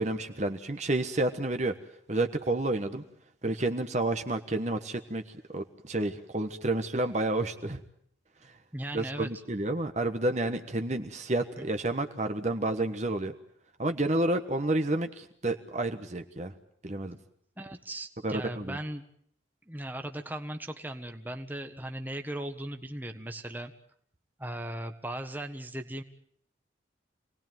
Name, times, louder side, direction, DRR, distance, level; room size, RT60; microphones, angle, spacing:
voice 1, 0.0-1.7 2.1-3.0 3.4-5.2 5.5-7.8 8.9-13.3 13.8-16.5 16.8-17.2 18.2-18.8, right 2 dB, 35° right, 7 dB, 1.3 m, -30 dB
voice 2, 8.7-9.3 11.6-11.7 17.6-19.0 19.7-23.7 24.4-26.0, right 1 dB, 10° right, 6 dB, 1.5 m, -38 dB
28.0 x 19.0 x 9.2 m, 0.67 s
head